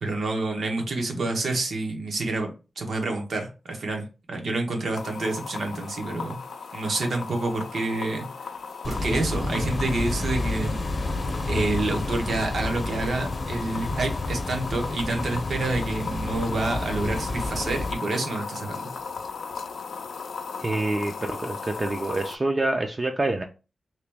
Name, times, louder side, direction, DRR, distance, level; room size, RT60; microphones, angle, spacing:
voice 1, 0.0-6.4 6.7-8.3 8.9-10.8 11.5-18.9, right 2 dB, 75° right, 0.9 m, -28 dB
sound 1, 4.9-22.4, left 5 dB, 80° left, 0.4 m, -37 dB
sound 2, 8.8-17.9, left 2 dB, 40° left, 0.7 m, -30 dB
voice 2, 20.6-23.4, right 2 dB, 30° right, 0.4 m, -26 dB
3.0 x 2.9 x 3.4 m
wide cardioid pair, 100°, 0 cm